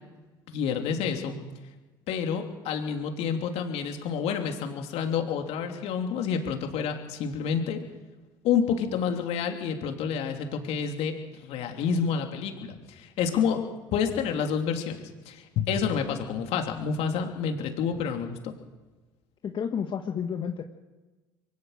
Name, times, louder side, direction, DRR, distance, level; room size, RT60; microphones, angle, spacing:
voice 1, 0.5-1.4 2.1-7.8 8.4-13.6 13.9-15.0 15.2-18.5, left 6 dB, 65° left, 4 dB, 3.1 m, -29 dB
voice 2, 19.4-20.6, left 7 dB, 45° left, 4 dB, 1.5 m, -31 dB
23.0 x 17.5 x 6.7 m, 1.2 s
hypercardioid pair, 70°, 11 cm